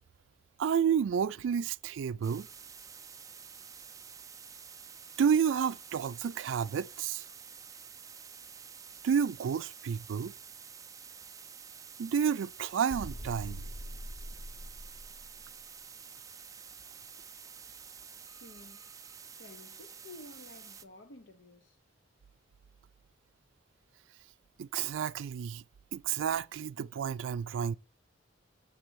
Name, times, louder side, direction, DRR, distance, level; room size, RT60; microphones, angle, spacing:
voice 1, 0.6-2.5 5.2-7.3 9.0-10.3 12.0-13.7 24.6-25.6 25.9-27.8, right 7 dB, 85° right, 0.3 m, -30 dB
sound 1, 2.2-20.8, right 6 dB, 20° right, 0.4 m, -50 dB
sound 2, 12.9-15.6, equal, 40° left, 1.1 m, -43 dB
voice 2, 18.3-18.9 19.4-21.8, left 2 dB, 70° left, 0.8 m, -52 dB
7.9 x 3.4 x 6.2 m
head